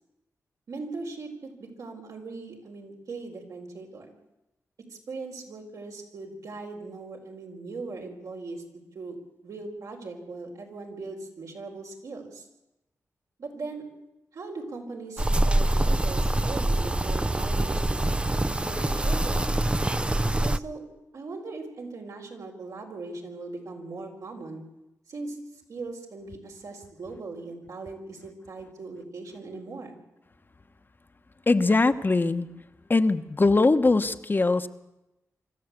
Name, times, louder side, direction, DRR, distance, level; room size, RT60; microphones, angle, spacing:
voice 1, 0.7-4.1 4.9-8.6 8.9-9.2 9.4-12.5 13.4-13.8 14.3-19.5 20.4-20.8 21.1-24.6 25.1-25.4 25.7-30.0, right 3 dB, 75° right, 1 dB, 5.0 m, -39 dB
sound 1, 15.2-20.6, right 1 dB, 20° right, 0.7 m, -25 dB
voice 2, 31.5-32.5 32.9-34.7, left 3 dB, 35° left, 9 dB, 1.2 m, -21 dB
25.0 x 13.5 x 8.4 m, 0.93 s
cardioid pair, 55°, 6 cm